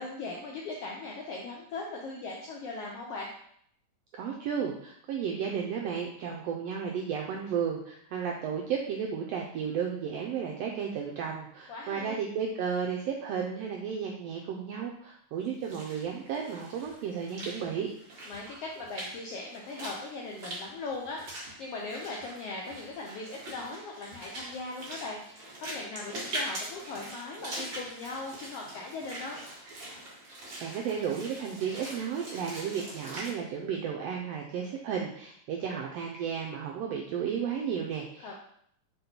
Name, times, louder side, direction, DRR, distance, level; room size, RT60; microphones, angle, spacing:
voice 1, 0.0-3.3 11.7-12.2 18.3-29.4 38.2-38.4, left 3 dB, 80° left, -1 dB, 1.3 m, -39 dB
voice 2, 4.1-17.9 30.6-38.4, right 7 dB, 90° right, 0 dB, 1.4 m, -33 dB
Walk footsteps / Splash splatter, 15.5-33.3, right 1 dB, 45° right, 2.1 m, -43 dB
5.3 x 4.3 x 4.3 m, 0.67 s
omnidirectional pair, 3.5 m